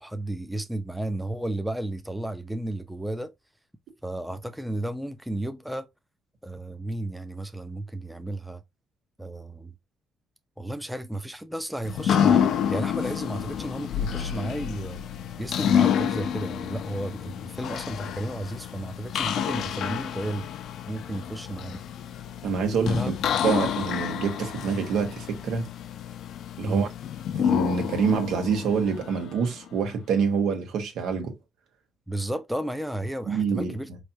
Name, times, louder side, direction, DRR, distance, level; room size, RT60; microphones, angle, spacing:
voice 1, 0.0-3.3 4.0-5.9 6.4-8.6 9.2-9.7 10.6-15.0 15.4-20.5 20.9-21.8 22.9-23.1 23.5-23.6 26.6-26.9 32.1-33.9, right 1 dB, 5° right, 0.6 m, -33 dB
sound 1, 11.8-29.7, left 9 dB, 75° left, 0.5 m, -29 dB
voice 2, 22.4-23.0 23.4-25.7 26.6-26.9 27.3-31.3 33.3-33.7, right 6 dB, 80° right, 1.5 m, -26 dB
4.3 x 3.2 x 2.7 m
cardioid pair, 90°, 0 cm